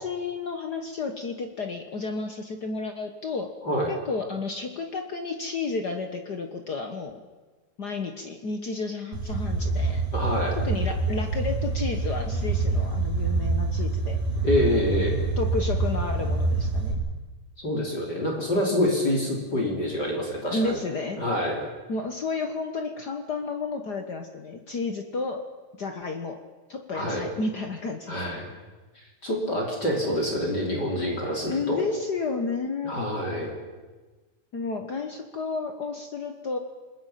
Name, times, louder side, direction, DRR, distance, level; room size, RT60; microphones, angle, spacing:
voice 1, 0.0-3.6 3.9-7.2 7.8-10.0 10.6-14.2 15.4-17.0 20.5-21.2 21.9-25.5 25.8-26.4 26.7-28.2 31.0-33.0 34.5-36.6, left 3 dB, 75° left, 5 dB, 0.9 m, -32 dB
sound 1, 9.1-16.9, right 3 dB, 85° right, 6.5 m, -26 dB
voice 2, 10.1-10.6 14.4-15.2 17.6-20.8 21.2-21.6 26.9-27.3 28.1-28.5 29.2-31.8 32.8-33.5, left 1 dB, 30° left, -1 dB, 3.8 m, -26 dB
28.5 x 20.5 x 5.8 m, 1.3 s
omnidirectional pair, 3.8 m